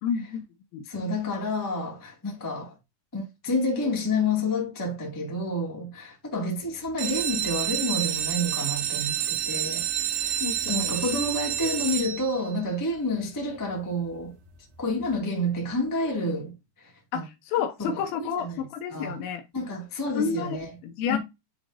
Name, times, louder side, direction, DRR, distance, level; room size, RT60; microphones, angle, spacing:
voice 1, 0.0-0.4 0.7-0.9 10.4-10.9 17.1-19.4 20.2-20.6 20.8-21.2, left 7 dB, 75° left, 2.6 m, -30 dB
voice 2, 0.8-2.7 3.1-10.4 10.7-14.3 14.8-17.2 17.8-19.2 19.5-20.7 21.1-21.2, left 1 dB, 10° left, 0.9 m, -29 dB
sound 1, 6.9-12.6 13.2-13.7 14.1-14.2 14.4-14.5 15.0-15.1, right 10 dB, 80° right, 3.0 m, -29 dB
10.5 x 4.1 x 2.6 m
omnidirectional pair, 4.5 m